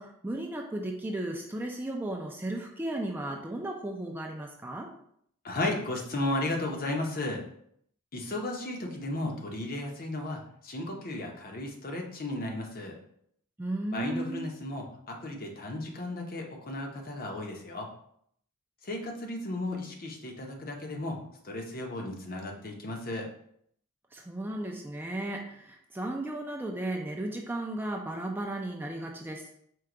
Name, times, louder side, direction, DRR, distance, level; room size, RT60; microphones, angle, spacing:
voice 1, 0.0-4.9 13.6-14.4 24.1-29.5, right 1 dB, 10° right, 1 dB, 0.4 m, -35 dB
voice 2, 5.4-7.4 8.1-13.0 13.9-17.9 18.8-23.3, left 2 dB, 45° left, 1 dB, 0.7 m, -34 dB
4.5 x 2.2 x 3.7 m, 0.68 s
head